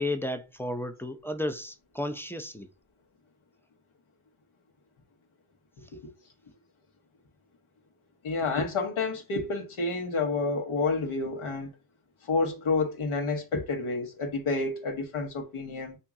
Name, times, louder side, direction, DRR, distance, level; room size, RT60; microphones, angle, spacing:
voice 1, 0.0-2.7, left 1 dB, 5° left, 0.5 m, -33 dB
voice 2, 8.2-11.7 12.3-16.0, left 3 dB, 75° left, 1.1 m, -29 dB
2.9 x 2.7 x 3.6 m
cardioid pair, 60°, 49 cm